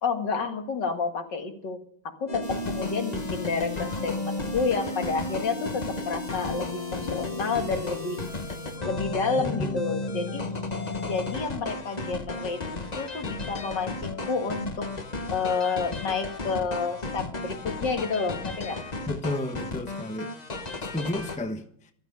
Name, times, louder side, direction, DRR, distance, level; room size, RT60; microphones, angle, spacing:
voice 1, 0.0-1.8 2.0-8.2 8.9-10.4 11.0-14.9 15.3-18.8, left 4 dB, 65° left, 2.5 m, -30 dB
sound 1, 2.3-21.4, left 2 dB, 25° left, 1.0 m, -33 dB
sound 2, 2.4-8.8, right 2 dB, 30° right, 2.5 m, -50 dB
sound 3, 6.3-18.6, left 4 dB, 85° left, 4.4 m, -50 dB
voice 2, 9.4-9.8 19.1-20.3 20.9-21.9, left 1 dB, 5° left, 0.8 m, -32 dB
14.5 x 13.5 x 5.4 m
omnidirectional pair, 2.1 m